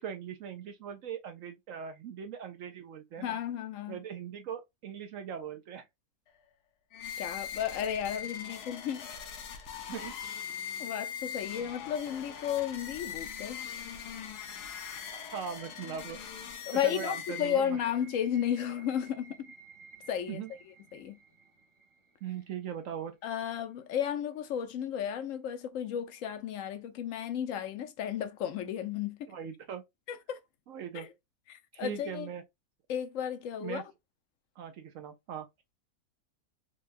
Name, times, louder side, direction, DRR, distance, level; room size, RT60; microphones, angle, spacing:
voice 1, 0.0-3.4 3.9-5.9 9.9-10.1 15.1-16.2 16.7-17.8 20.3-20.5 22.2-23.2 29.3-29.8 30.7-31.1 31.7-32.4 33.6-33.8 34.6-35.5, right 8 dB, 65° right, 0.9 m, -40 dB
voice 2, 3.2-4.0 7.2-9.1 10.0-10.1 10.8-13.6 16.7-19.5 20.1-20.4 20.9-21.2 23.2-29.3 30.1-30.4 30.9-31.1 31.5-32.3 32.9-33.8, left 9 dB, 65° left, 0.9 m, -33 dB
sound 1, 6.9-18.0, left 8 dB, 85° left, 1.3 m, -41 dB
sound 2, 14.3-23.0, right 7 dB, 25° right, 0.9 m, -58 dB
4.6 x 2.3 x 2.5 m
omnidirectional pair, 1.7 m